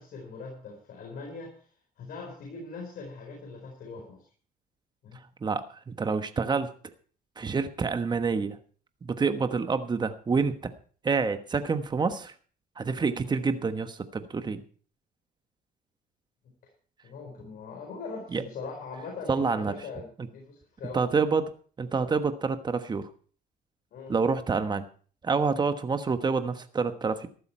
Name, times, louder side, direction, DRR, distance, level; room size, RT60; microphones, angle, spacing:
voice 1, 0.0-1.6 2.0-4.2 5.0-5.2 17.0-21.0 23.9-24.2, left 4 dB, 60° left, 1 dB, 4.6 m, -41 dB
voice 2, 5.4-6.7 7.4-8.6 9.0-10.6 11.0-12.3 12.8-14.6 18.3-18.4 19.3-19.7 20.9-21.5 21.8-23.1 24.1-24.8 25.2-27.3, right 4 dB, 25° right, 9 dB, 1.3 m, -27 dB
14.5 x 12.0 x 4.4 m, 0.43 s
cardioid pair, 110°, 17 cm